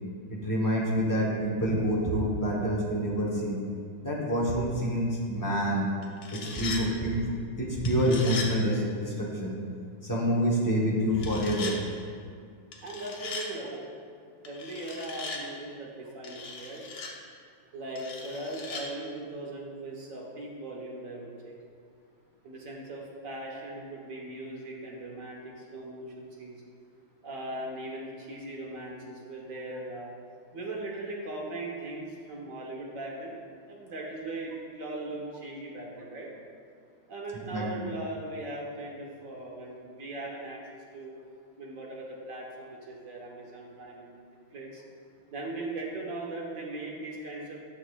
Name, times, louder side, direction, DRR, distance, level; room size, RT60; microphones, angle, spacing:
voice 1, 0.3-3.6 4.0-5.9 6.3-7.2 7.6-9.5 10.0-11.7 37.5-37.8, equal, 25° left, -5 dB, 0.4 m, -27 dB
sound 1, 6.0-6.8 7.8-8.5 11.1-11.8 12.7-13.5 14.4-15.4 16.2-17.1 18.0-18.8, left 4 dB, 60° left, 1.2 m, -38 dB
voice 2, 12.8-13.8 14.4-16.8 17.7-21.6 22.4-26.6 27.2-30.1 30.5-33.4 33.6-36.3 37.1-40.6 40.9-41.1 41.6-44.8 45.3-47.6, right 2 dB, 50° right, -2 dB, 1.3 m, -39 dB
9.8 x 6.5 x 2.3 m, 2.1 s
omnidirectional pair, 2.1 m